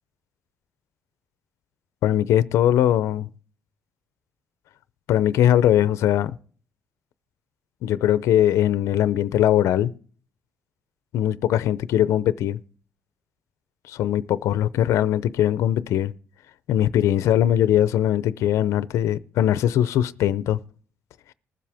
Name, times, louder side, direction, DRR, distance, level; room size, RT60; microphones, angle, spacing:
voice 1, 2.0-3.3 5.1-6.4 7.8-9.9 11.1-12.6 13.9-16.1 16.7-20.6, left 11 dB, 70° left, 0.6 m, -20 dB
20.5 x 7.6 x 3.4 m
cardioid pair, 175°, 5 cm